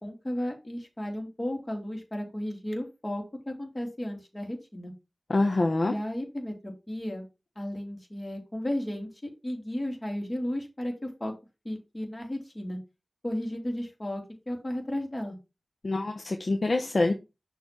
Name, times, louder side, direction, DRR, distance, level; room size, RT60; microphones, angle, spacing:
voice 1, 0.0-4.9 5.9-7.2 7.6-11.3 11.6-12.8 13.2-15.4, left 1 dB, 30° left, 2.8 m, -34 dB
voice 2, 5.3-5.9 15.8-17.1, left 2 dB, 55° left, 0.7 m, -25 dB
6.4 x 3.4 x 6.0 m
wide cardioid pair, 60°, 0 cm